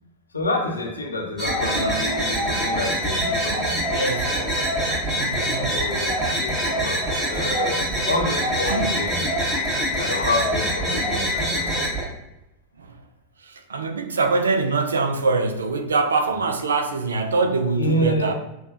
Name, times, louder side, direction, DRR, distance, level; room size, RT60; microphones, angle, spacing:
voice 1, 0.3-3.8 5.6-7.0 7.3-9.2 10.0-11.8 17.7-18.3, left 1 dB, 75° left, 0.7 m, -28 dB
sound 1, 1.4-12.0, equal, 15° right, 1.2 m, -24 dB
voice 2, 3.9-4.3 5.2-5.8 8.7-9.0 12.8-13.0 13.4-18.3, right 3 dB, 70° right, 0.4 m, -24 dB
5.9 x 2.2 x 2.6 m
figure-of-eight pair, 90°, 0 cm